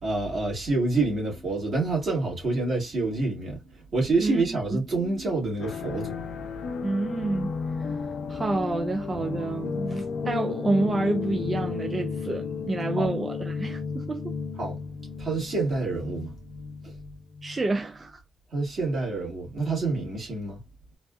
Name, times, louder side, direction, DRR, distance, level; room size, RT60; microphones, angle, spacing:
voice 1, 0.0-3.6 3.9-6.2 13.0-13.1 14.6-14.8 15.2-16.3 16.8-16.9 18.5-20.6, right 3 dB, 55° right, 1.8 m, -27 dB
voice 2, 4.2-4.8 6.8-14.4 17.4-18.2, right 2 dB, 25° right, 0.4 m, -29 dB
sound 1, 5.6-17.7, left 5 dB, 85° left, 0.7 m, -33 dB
4.0 x 2.4 x 2.3 m
wide cardioid pair, 135°, 0 cm